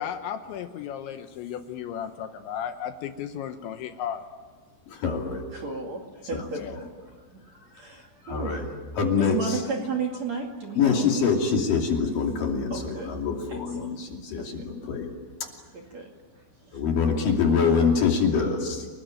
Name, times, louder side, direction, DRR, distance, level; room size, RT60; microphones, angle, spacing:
voice 1, 0.0-4.2 6.5-6.8, left 9 dB, 75° left, 8 dB, 3.1 m, -34 dB
voice 2, 4.9-5.4 6.3-6.5 8.2-8.7 9.0-9.6 10.8-15.1 15.4-15.5 16.7-18.9, left 5 dB, 50° left, 1 dB, 3.9 m, -25 dB
voice 3, 5.5-6.9 7.6-8.7 9.2-11.1 12.7-13.1 13.5-13.9 14.4-14.6 15.7-16.1 16.7-16.8 17.5-17.6, right 4 dB, 45° right, 1 dB, 2.8 m, -34 dB
29.5 x 19.5 x 9.1 m, 1.5 s
omnidirectional pair, 5.7 m